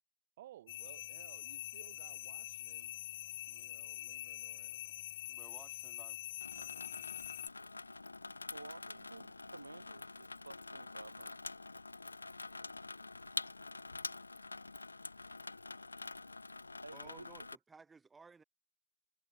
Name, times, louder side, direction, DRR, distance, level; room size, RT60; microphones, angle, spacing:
voice 1, 0.4-2.9 3.5-4.8, right 13 dB, 45° right, 4.0 m, -59 dB
sound 1, 0.7-7.5, left 15 dB, 40° left, 0.4 m, -45 dB
voice 2, 5.3-6.2 6.5-7.3 16.9-18.4, right 4 dB, 10° right, 1.8 m, -59 dB
Water tap faucet / Sink (filling or washing), 6.4-17.6, left 3 dB, 80° left, 1.6 m, -47 dB
voice 3, 8.5-11.5 16.8-17.5, right 3 dB, 80° right, 6.5 m, -53 dB
figure-of-eight pair, 125°, 0 cm